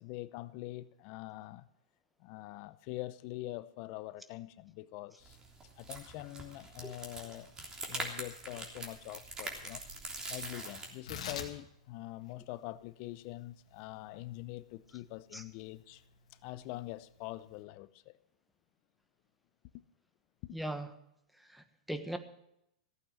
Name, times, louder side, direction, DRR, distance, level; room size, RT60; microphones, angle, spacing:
voice 1, 0.0-1.7 2.2-5.4 5.8-7.5 7.9-9.8 10.3-16.0 16.4-18.1 19.7-19.8 20.4-20.6, left 17 dB, 45° left, 0.6 m, -44 dB
sound 1, 5.2-10.9, right 2 dB, 20° right, 3.2 m, -43 dB
Tearing, 10.9-17.6, left 7 dB, 75° left, 2.2 m, -49 dB
voice 2, 20.5-20.9 21.5-22.2, right 1 dB, ahead, 1.3 m, -39 dB
15.5 x 8.8 x 7.5 m
hypercardioid pair, 120°, 4 cm